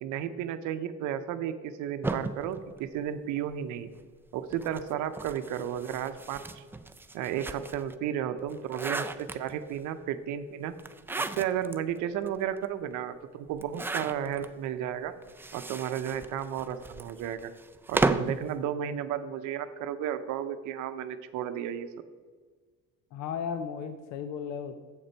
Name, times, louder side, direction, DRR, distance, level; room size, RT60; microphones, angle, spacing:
voice 1, 0.0-3.9 4.3-6.6 7.1-10.7 11.1-15.1 15.5-17.5 17.9-21.9, right 9 dB, 85° right, 11 dB, 0.7 m, -33 dB
sound 1, 2.0-3.6 4.5-7.9 8.4-9.8 10.8-11.8 12.3-12.4 12.6-12.7 13.6-14.5 15.2-18.4, right 2 dB, 10° right, 0.3 m, -34 dB
voice 2, 23.1-24.8, left 7 dB, 70° left, 9 dB, 0.6 m, -35 dB
7.5 x 6.7 x 4.4 m, 1.5 s
cardioid pair, 105°, 29 cm